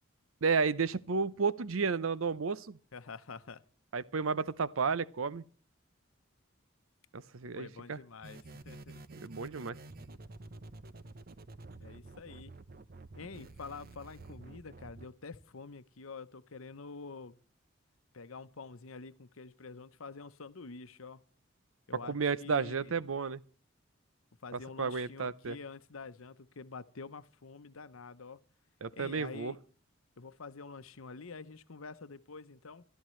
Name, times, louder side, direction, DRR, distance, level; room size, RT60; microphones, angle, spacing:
voice 1, 0.4-2.8 3.9-5.4 7.1-8.0 9.2-9.8 22.0-23.4 24.5-25.6 28.8-29.5, right 5 dB, 85° right, 0.7 m, -32 dB
voice 2, 2.9-3.6 7.5-9.0 11.8-12.5 13.1-17.4 18.1-21.2 21.9-22.9 24.4-28.4 28.9-29.6 30.2-32.8, left 4 dB, 90° left, 0.9 m, -47 dB
sound 1, 8.2-15.1, right 2 dB, 45° right, 0.8 m, -50 dB
24.5 x 12.5 x 3.2 m
head